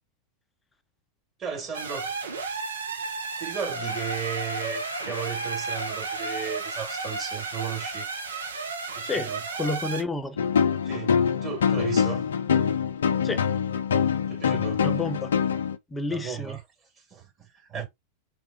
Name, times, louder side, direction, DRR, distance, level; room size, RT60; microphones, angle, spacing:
voice 1, 1.4-2.2 3.4-8.1 9.0-9.4 10.8-12.3 14.3-14.9 16.1-16.6 17.0-17.9, right 8 dB, 30° right, 2.4 m, -35 dB
sound 1, 1.7-10.0, right 4 dB, 70° right, 0.7 m, -33 dB
sound 2, 3.8-9.4, left 1 dB, 80° left, 0.8 m, -40 dB
voice 2, 9.6-10.4 13.2-13.5 14.8-15.3 15.9-16.6, left 2 dB, 15° left, 0.5 m, -30 dB
sound 3, 10.4-15.8, left 7 dB, 65° left, 0.4 m, -24 dB
3.5 x 3.3 x 2.8 m
figure-of-eight pair, 90°, 0 cm